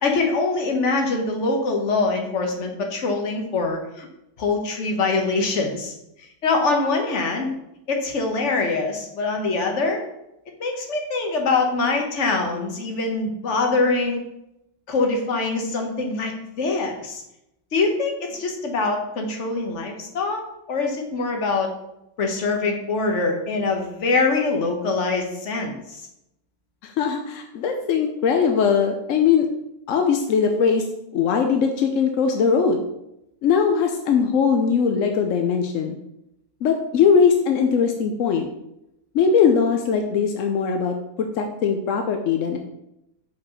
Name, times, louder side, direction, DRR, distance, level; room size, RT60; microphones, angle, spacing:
voice 1, 0.0-4.1 4.4-5.9 6.4-7.5 7.9-10.0 10.6-14.2 14.9-17.2 17.7-20.4 20.7-21.7 22.2-26.0, left 3 dB, 45° left, 3 dB, 1.2 m, -24 dB
voice 2, 26.8-29.5 29.9-30.9 31.1-32.9 33.4-36.0 36.6-38.5 39.1-42.6, left 6 dB, 65° left, 4 dB, 0.7 m, -20 dB
5.1 x 4.6 x 5.5 m, 0.85 s
omnidirectional pair, 1.9 m